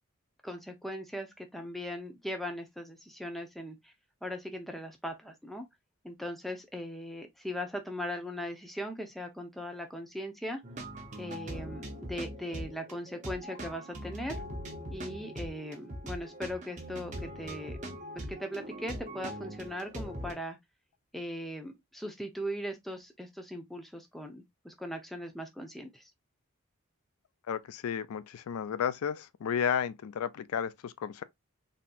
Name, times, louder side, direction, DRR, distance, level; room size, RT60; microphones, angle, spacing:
voice 1, 0.4-3.9 4.2-5.6 6.0-10.6 11.2-14.4 14.9-17.8 18.3-20.6 21.1-26.0, equal, ahead, 0.6 m, -39 dB
sound 1, 10.6-20.3, equal, 35° right, 0.9 m, -41 dB
voice 2, 27.5-31.2, left 7 dB, 90° left, 0.4 m, -33 dB
3.8 x 2.8 x 2.4 m
head